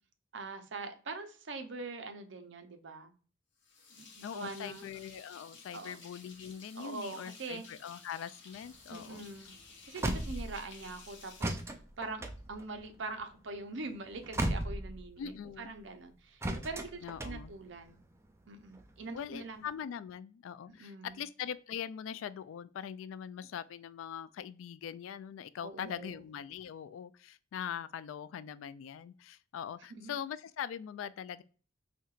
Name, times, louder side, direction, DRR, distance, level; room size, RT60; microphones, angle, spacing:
voice 1, 0.3-3.1 4.0-4.9 5.7-6.0 6.7-7.7 8.9-9.5 9.9-11.6 12.0-18.0 18.5-19.6 20.7-21.2 25.6-26.2 30.0-30.1, right 3 dB, 65° right, 0.6 m, -43 dB
sound 1, 3.6-12.4, left 4 dB, 65° left, 0.9 m, -55 dB
voice 2, 4.2-9.3 15.2-15.7 17.0-17.5 19.1-31.4, left 8 dB, 85° left, 0.3 m, -42 dB
sound 2, 8.5-10.9 11.4-15.3 16.4-18.0 18.6-19.6, right 1 dB, 15° right, 0.4 m, -37 dB
4.3 x 2.8 x 2.4 m
head